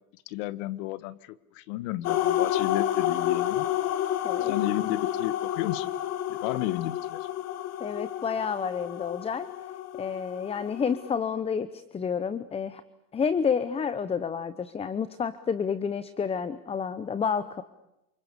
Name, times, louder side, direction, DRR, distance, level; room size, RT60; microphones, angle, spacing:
voice 1, 0.3-3.7 4.4-5.9 6.3-7.3, left 15 dB, 60° left, 17 dB, 1.6 m, -33 dB
sound 1, 2.0-11.1, left 12 dB, 35° left, 2.0 m, -30 dB
voice 2, 7.8-9.5 10.0-12.8 13.1-17.6, left 6 dB, 15° left, 15 dB, 0.9 m, -29 dB
29.5 x 28.0 x 7.0 m, 0.90 s
supercardioid pair, 145°, 44 cm